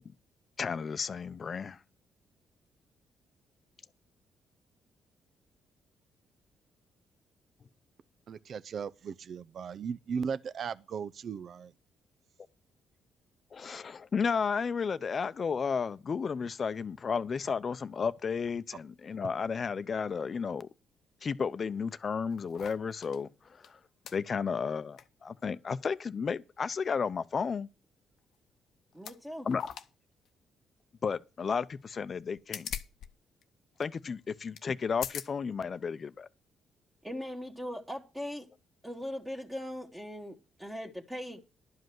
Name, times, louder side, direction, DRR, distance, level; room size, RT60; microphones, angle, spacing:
voice 1, 0.6-1.8 13.5-20.7 21.2-23.8 24.1-27.7 29.4-29.6 31.0-32.7 33.8-36.3, left 6 dB, 40° left, 0.7 m, -33 dB
voice 2, 8.3-11.7, right 6 dB, 55° right, 0.6 m, -37 dB
sound 1, 21.9-23.2 23.6-23.7 24.1-24.2 24.7-25.1 25.4-25.5 28.2-28.4 28.9-29.2 29.5-29.9 30.2-30.3 32.2-33.1 33.3-33.4 33.8-33.9 34.6-34.7 34.9-35.3 36.0-36.1, left 9 dB, 70° left, 0.8 m, -41 dB
voice 3, 28.9-29.5 37.0-38.5 38.8-41.4, equal, 10° right, 1.6 m, -40 dB
11.5 x 5.3 x 7.7 m
cardioid pair, 90°, 0 cm